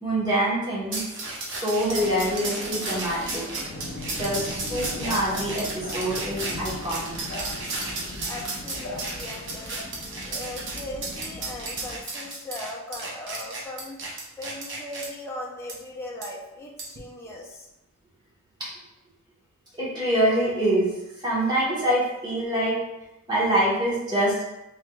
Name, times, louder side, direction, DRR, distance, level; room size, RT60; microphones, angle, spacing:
voice 1, 0.0-1.1 1.5-3.4 4.2-7.1 18.6-18.7 19.8-20.9 21.2-22.8 23.3-24.5, right 1 dB, 20° right, -7 dB, 1.1 m, -25 dB
sound 1, 0.9-15.1 15.7-15.8 16.2-16.3 16.8-17.0, right 2 dB, 55° right, 0.8 m, -33 dB
sound 2, 1.8-12.0, left 2 dB, 70° left, 0.6 m, -38 dB
voice 2, 8.2-14.0 14.4-17.7, left 1 dB, 10° left, -3 dB, 0.5 m, -39 dB
3.6 x 3.2 x 2.3 m, 0.93 s
head